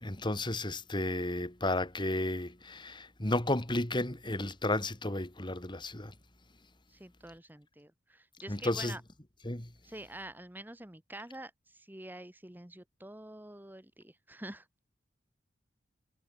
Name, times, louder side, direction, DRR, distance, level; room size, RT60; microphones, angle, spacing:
voice 1, 0.0-6.1 8.5-9.0 9.4-9.7, left 1 dB, 25° left, 2.5 m, -33 dB
voice 2, 6.9-9.0 9.8-14.7, right 1 dB, 10° right, 1.5 m, -47 dB
head